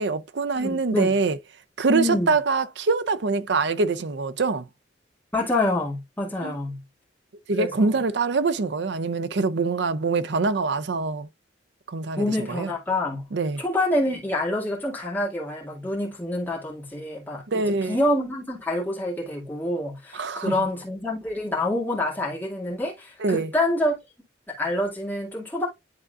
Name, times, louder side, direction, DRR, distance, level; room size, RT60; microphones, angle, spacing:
voice 1, 0.0-1.4 1.8-4.7 6.4-6.5 7.5-11.3 11.9-12.7 13.3-13.6 17.5-18.0 20.1-20.6 23.2-23.5, right 4 dB, 65° right, 0.5 m, -24 dB
voice 2, 0.6-1.1 1.9-2.3 5.3-6.8 7.5-7.9 12.1-13.2 13.6-23.9 24.5-25.7, left 1 dB, 10° left, 2.0 m, -27 dB
10.5 x 3.7 x 2.4 m
head